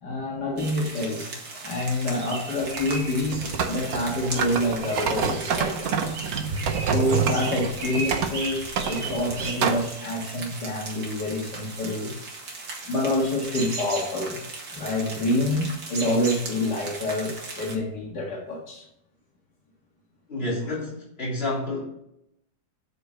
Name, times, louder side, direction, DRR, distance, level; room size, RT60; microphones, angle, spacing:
voice 1, 0.0-6.0 6.8-12.1 12.9-14.4 14.7-18.9 20.7-20.8, left 1 dB, 80° left, -2 dB, 2.6 m, -27 dB
sound 1, 0.6-17.7, right 3 dB, 80° right, 2.5 m, -37 dB
sound 2, 2.6-9.9, right 6 dB, 65° right, 1.4 m, -28 dB
voice 2, 20.3-21.8, left 1 dB, 35° left, -5 dB, 3.4 m, -29 dB
8.0 x 6.1 x 6.4 m, 0.80 s
omnidirectional pair, 1.8 m